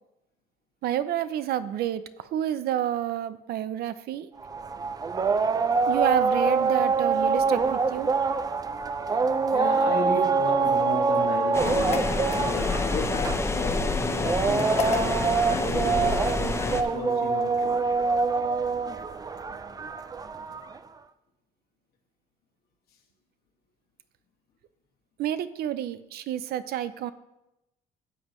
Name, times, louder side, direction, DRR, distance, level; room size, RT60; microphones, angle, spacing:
voice 1, 0.8-4.3 5.9-8.1 25.2-27.1, right 11 dB, 70° right, 0.6 m, -29 dB
sound 1, 4.4-20.8, right 4 dB, 20° right, 0.4 m, -25 dB
voice 2, 9.5-17.9, left 4 dB, 65° left, 1.8 m, -34 dB
sound 2, 11.5-16.8, left 3 dB, 15° left, 0.8 m, -28 dB
sound 3, 11.6-13.0 14.6-15.4, left 6 dB, 40° left, 1.1 m, -34 dB
12.5 x 7.4 x 3.1 m
cardioid pair, 110°, 17 cm